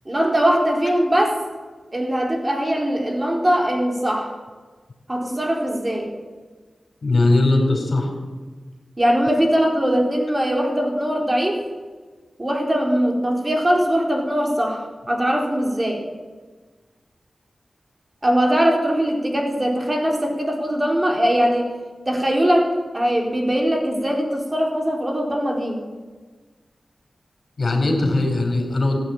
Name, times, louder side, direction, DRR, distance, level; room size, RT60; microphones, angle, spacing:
voice 1, 0.1-1.4 1.9-4.3 5.1-6.1 9.0-11.6 12.4-16.0 18.2-21.7 22.1-25.8, equal, 30° right, 1 dB, 4.3 m, -21 dB
voice 2, 7.0-8.1 27.6-29.0, left 2 dB, 65° left, 3 dB, 4.2 m, -19 dB
15.5 x 9.5 x 8.9 m, 1.4 s
cardioid pair, 40°, 0 cm